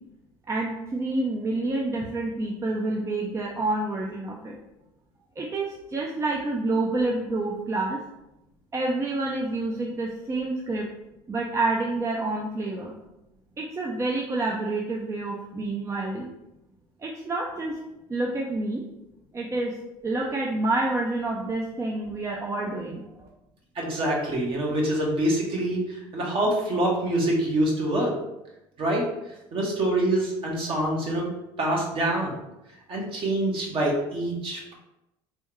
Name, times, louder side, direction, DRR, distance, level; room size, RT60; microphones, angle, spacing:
voice 1, 0.5-4.6 5.4-8.0 8.7-10.9 11.3-13.0 13.6-16.3 17.0-17.8 18.1-18.8 19.3-19.7 20.0-23.3, right 2 dB, 25° right, -2 dB, 0.6 m, -28 dB
voice 2, 23.7-28.1 28.8-29.0 29.5-31.3 31.6-32.3 32.9-34.7, right 1 dB, 50° right, -2 dB, 1.4 m, -25 dB
3.5 x 3.4 x 3.1 m, 0.91 s
supercardioid pair, 85°, 12 cm